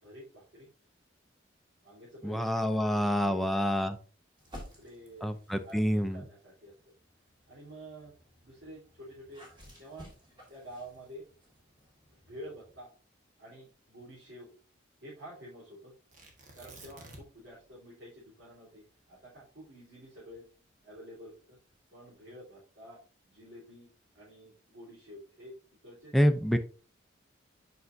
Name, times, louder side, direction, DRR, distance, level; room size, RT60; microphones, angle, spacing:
voice 1, 0.0-0.7 1.8-2.4 2.7-3.5 4.7-5.3 5.6-6.7 7.5-8.1 8.4-9.4 9.8-10.1 10.5-11.3 12.3-12.9 13.4-14.5 15.0-15.9 16.5-18.8 19.1-20.4 20.8-21.6 21.9-25.5 25.8-26.1, equal, 70° right, -10 dB, 3.4 m, -49 dB
voice 2, 2.2-4.0 5.2-6.2 26.1-26.6, equal, ahead, 6 dB, 0.4 m, -27 dB
sound 1, 4.4-6.0 6.6-12.8, equal, 25° right, 1.8 m, -54 dB
Tearing, 16.1-17.5 17.8-17.9 18.4-20.8 21.5-22.0, right 2 dB, 40° right, 1.4 m, -52 dB
8.1 x 5.5 x 2.6 m, 0.38 s
head